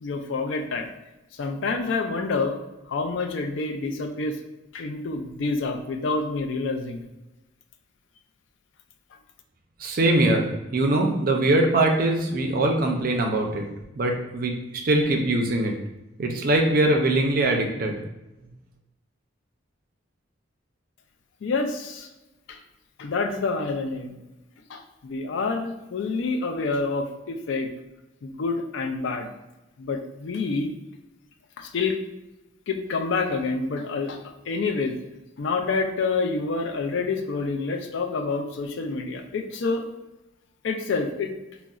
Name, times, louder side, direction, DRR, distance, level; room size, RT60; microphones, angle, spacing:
voice 1, 0.0-0.9 1.4-2.6 2.9-4.4 4.7-7.1 21.4-22.1 22.5-22.6 23.0-24.2 24.7-27.7 28.2-29.3 29.8-30.7 31.6-32.0 32.7-34.2 34.5-35.0 35.4-39.8 40.6-41.3, left 4 dB, 65° left, 4 dB, 0.4 m, -27 dB
voice 2, 9.8-13.7 14.0-14.5 14.8-15.8 16.2-18.0, right 2 dB, 45° right, 2 dB, 0.4 m, -22 dB
3.8 x 2.0 x 2.3 m, 0.99 s
head